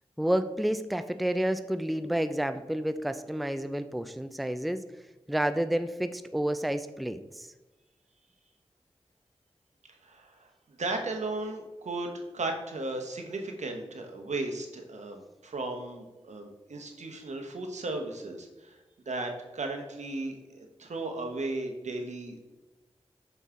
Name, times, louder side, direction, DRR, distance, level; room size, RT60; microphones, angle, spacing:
voice 1, 0.2-4.8 5.3-7.5, right 1 dB, ahead, 10 dB, 0.4 m, -30 dB
voice 2, 10.0-18.8 19.1-22.4, right 2 dB, 80° right, 4 dB, 1.0 m, -36 dB
5.9 x 5.3 x 3.7 m, 1.1 s
cardioid pair, 40°, 12 cm